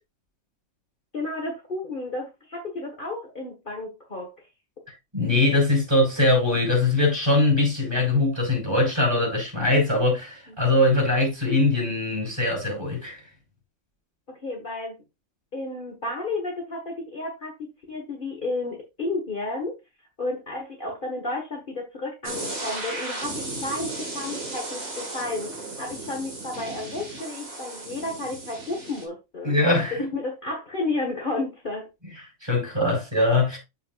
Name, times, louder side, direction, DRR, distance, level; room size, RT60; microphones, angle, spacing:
voice 1, 1.1-4.3 10.5-10.6 14.3-15.0 15.5-19.8 20.2-25.5 25.8-29.5 30.0-31.9, left 2 dB, 35° left, 1.8 m, -32 dB
voice 2, 5.1-13.2 29.4-30.1 32.4-33.6, left 2 dB, 20° right, 5.3 m, -22 dB
sound 1, 22.2-29.0, right 2 dB, 75° right, 3.0 m, -35 dB
8.8 x 7.3 x 2.5 m
omnidirectional pair, 1.5 m